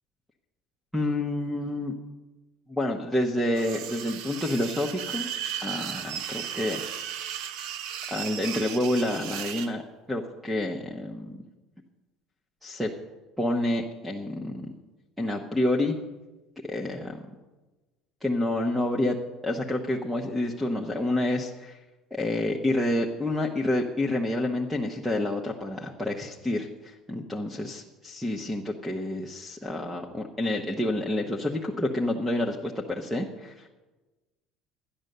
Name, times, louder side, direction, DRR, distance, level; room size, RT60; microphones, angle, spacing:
voice 1, 0.9-1.9 2.7-5.3 5.6-6.8 8.1-9.8 10.1-11.4 12.6-12.9 13.4-14.7 15.2-15.9 16.7-17.2 18.2-19.2 19.4-21.8 22.1-33.7, left 1 dB, ahead, 3 dB, 0.9 m, -28 dB
sound 1, 3.5-9.7, right 9 dB, 70° right, 0.9 m, -35 dB
12.5 x 10.5 x 6.7 m, 1.2 s
cardioid pair, 140°, 0 cm